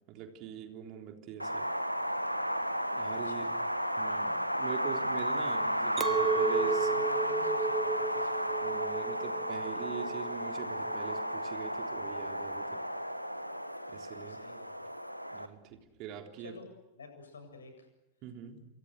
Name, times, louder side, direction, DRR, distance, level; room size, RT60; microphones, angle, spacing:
voice 1, 0.1-1.7 2.9-3.6 4.0-6.9 8.6-12.8 13.9-14.4 15.3-16.6 18.2-18.7, right 8 dB, 40° right, 4 dB, 3.7 m, -43 dB
Wind, 1.4-15.5, equal, 90° right, 1.6 m, -33 dB
Chink clink, 6.0-11.3, right 4 dB, 20° right, 1.6 m, -33 dB
voice 2, 6.5-8.5 14.3-14.7 15.4-15.5 16.4-16.6 16.9-17.9, left 3 dB, 70° left, 7 dB, 7.9 m, -52 dB
28.5 x 28.0 x 6.6 m, 1.0 s
figure-of-eight pair, 90°, 0 cm